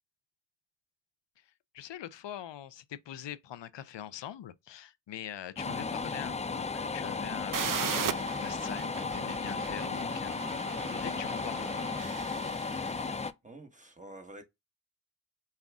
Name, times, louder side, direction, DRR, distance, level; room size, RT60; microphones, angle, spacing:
voice 1, 1.7-10.4 10.7-11.9, left 11 dB, 70° left, 0.6 m, -43 dB
sound 1, 5.6-13.3, left 4 dB, 15° left, 0.3 m, -35 dB
sound 2, 7.5-13.2, right 7 dB, 45° right, 0.6 m, -38 dB
voice 2, 13.4-14.4, right 1 dB, 15° right, 1.3 m, -48 dB
5.6 x 2.4 x 3.5 m
cardioid pair, 50°, 45 cm